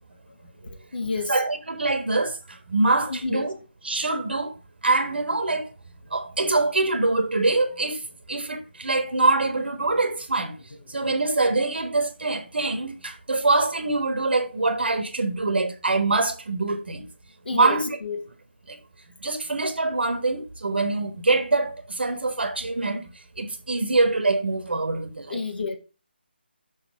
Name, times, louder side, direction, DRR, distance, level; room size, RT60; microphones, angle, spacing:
voice 1, 0.6-1.3 3.1-3.4 10.9-11.0 17.4-18.2 25.3-25.8, left 3 dB, 60° left, 1.5 m, -29 dB
voice 2, 1.3-2.4 2.7-3.5 3.8-4.5 4.8-5.7 6.1-8.0 8.3-10.5 10.9-17.1 17.5-18.0 18.7-18.8 19.2-23.1 23.4-25.4, right 3 dB, 65° right, 1.2 m, -24 dB
6.0 x 4.1 x 6.2 m
figure-of-eight pair, 155°, 6 cm